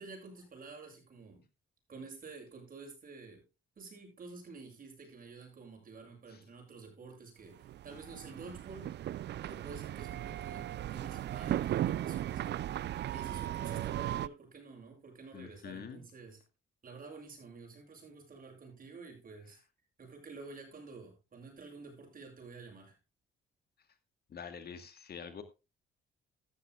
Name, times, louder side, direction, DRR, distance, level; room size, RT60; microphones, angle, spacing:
voice 1, 0.0-1.4 1.9-3.4 3.8-9.0 9.4-12.7 13.1-16.4 16.8-19.6 20.0-23.0, right 4 dB, 45° right, 3 dB, 7.7 m, -50 dB
sound 1, 7.6-14.3, right 12 dB, 60° right, 0.5 m, -36 dB
voice 2, 15.3-16.0 24.3-25.4, left 6 dB, 55° left, 9 dB, 2.1 m, -45 dB
14.5 x 13.5 x 2.3 m, 0.27 s
cardioid pair, 90°, 20 cm